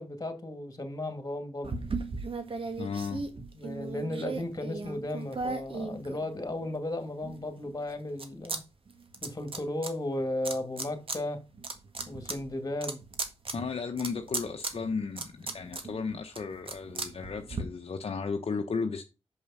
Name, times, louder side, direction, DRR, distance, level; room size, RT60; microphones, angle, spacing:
voice 1, 0.0-1.8 3.5-8.6 9.2-11.4 12.1-13.0, left 1 dB, 30° left, 2.2 m, -35 dB
sound 1, 1.6-6.7 7.2-8.6 8.9-9.9 10.4-11.2 11.5-17.6, right 3 dB, 50° right, 1.7 m, -37 dB
voice 2, 2.8-3.3 13.5-19.0, left 5 dB, 60° left, 0.9 m, -34 dB
6.5 x 5.5 x 5.6 m
cardioid pair, 55°, 11 cm